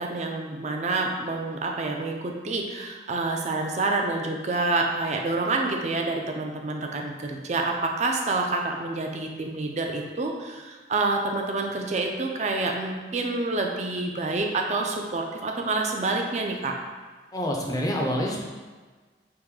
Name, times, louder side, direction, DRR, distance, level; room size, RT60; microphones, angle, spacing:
voice 1, 0.0-16.7, right 3 dB, 40° right, 2 dB, 0.4 m, -28 dB
voice 2, 17.3-18.4, equal, 20° left, -1 dB, 0.5 m, -27 dB
3.6 x 2.6 x 4.7 m, 1.4 s
head